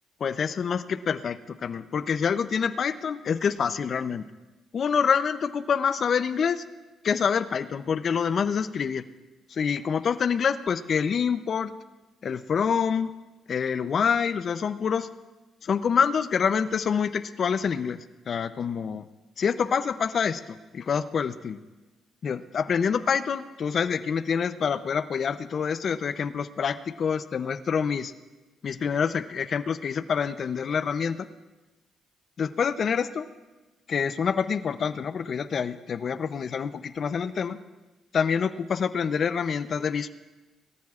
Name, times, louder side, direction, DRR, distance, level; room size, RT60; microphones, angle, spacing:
voice 1, 0.2-4.2 4.7-6.6 7.0-9.0 9.5-11.7 12.2-13.1 13.5-15.1 15.6-19.0 19.4-21.6 22.2-28.1 28.6-31.3 32.4-33.3 33.9-37.6 38.1-40.1, left 6 dB, 50° left, 12 dB, 0.6 m, -26 dB
22.0 x 14.0 x 2.5 m, 1.2 s
cardioid pair, 90°, 0 cm